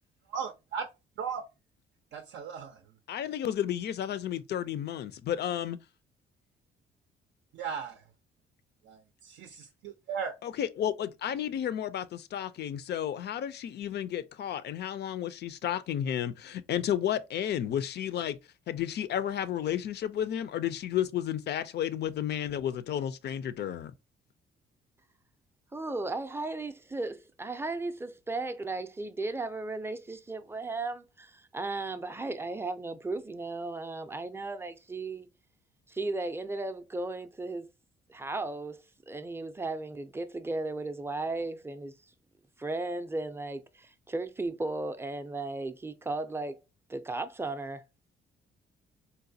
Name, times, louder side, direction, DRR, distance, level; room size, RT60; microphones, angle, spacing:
voice 1, 0.3-0.9 1.2-1.4 2.1-2.8 7.5-8.0 8.9-10.3, right 6 dB, 70° right, 0.5 m, -37 dB
voice 2, 3.1-5.8 10.4-18.4 18.7-23.9, left 10 dB, 60° left, 0.4 m, -32 dB
voice 3, 25.7-35.3 35.9-37.7 38.1-41.9 42.6-46.6 46.9-47.8, right 2 dB, 10° right, 0.4 m, -35 dB
4.0 x 2.2 x 2.6 m
cardioid pair, 90°, 20 cm